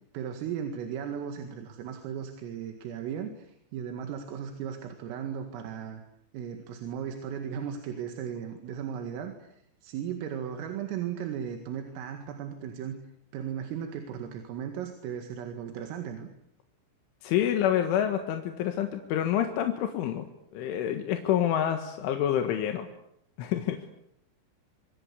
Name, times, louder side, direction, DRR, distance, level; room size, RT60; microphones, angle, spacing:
voice 1, 0.1-6.0 6.3-9.5 9.8-13.0 13.3-16.3, right 8 dB, 85° right, 6 dB, 4.6 m, -36 dB
voice 2, 17.2-20.3 20.5-22.9 23.4-23.8, left 10 dB, 75° left, 6 dB, 4.0 m, -27 dB
26.0 x 25.0 x 8.3 m, 0.76 s
omnidirectional pair, 5.8 m